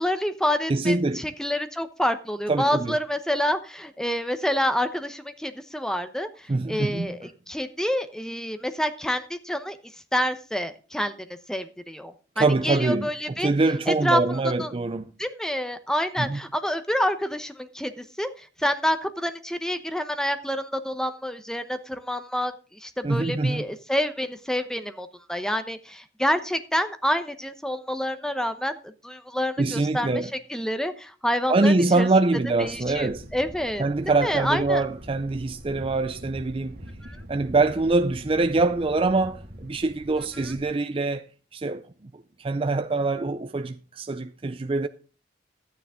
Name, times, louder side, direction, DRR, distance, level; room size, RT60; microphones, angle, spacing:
voice 1, 0.0-6.3 6.7-9.8 10.1-11.1 11.5-13.5 13.9-14.2 14.6-14.7 15.2-22.5 22.8-30.1 30.5-32.1 32.6-33.8 34.2-34.8 37.0-37.2, equal, 5° left, 0.9 m, -28 dB
voice 2, 0.7-1.2 2.5-3.0 6.5-7.2 12.4-15.1 16.2-16.4 23.0-23.6 29.6-30.3 31.5-33.2 33.8-36.8 37.3-41.2 41.5-41.9 42.1-44.9, right 3 dB, 30° right, 0.5 m, -24 dB
Thunder, 32.6-40.6, equal, 60° right, 1.8 m, -44 dB
13.0 x 9.5 x 3.7 m
head